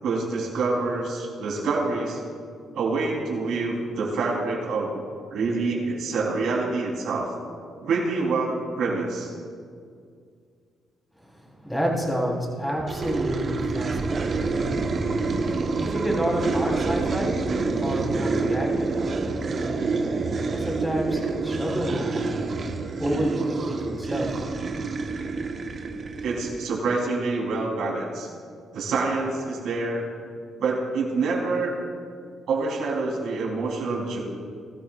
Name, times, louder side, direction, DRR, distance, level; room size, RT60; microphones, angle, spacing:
voice 1, 0.0-2.2 2.7-5.0 5.3-7.3 7.8-9.3 26.2-28.3 28.7-30.1 30.6-31.8 32.5-34.2, right 3 dB, 75° right, -3 dB, 3.8 m, -26 dB
voice 2, 11.2-14.6 15.8-17.4 17.7-19.2 20.5-22.3 23.0-24.3, equal, 5° left, -3 dB, 3.7 m, -29 dB
sound 1, 12.9-26.7, right 3 dB, 45° right, 1.3 m, -27 dB
20.5 x 13.0 x 2.5 m, 2.2 s
cardioid pair, 90°, 0 cm